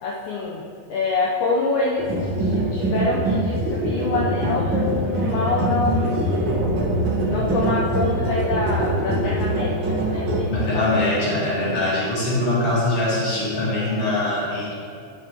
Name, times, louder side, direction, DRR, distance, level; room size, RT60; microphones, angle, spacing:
voice 1, 0.0-0.6 0.9-6.5 7.3-10.9, left 3 dB, 75° left, -4 dB, 1.9 m, -26 dB
sound 1, 2.0-10.4, right 1 dB, 80° right, 1.1 m, -23 dB
voice 2, 10.5-14.7, left 2 dB, 45° left, -8 dB, 3.5 m, -22 dB
11.0 x 8.8 x 3.0 m, 2.5 s
omnidirectional pair, 4.3 m